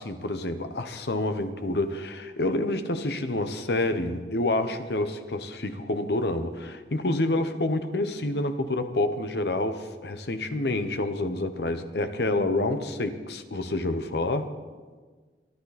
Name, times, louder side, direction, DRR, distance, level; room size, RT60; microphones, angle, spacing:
voice 1, 0.0-14.5, left 2 dB, 65° left, 10 dB, 1.0 m, -28 dB
23.5 x 12.5 x 4.2 m, 1.5 s
head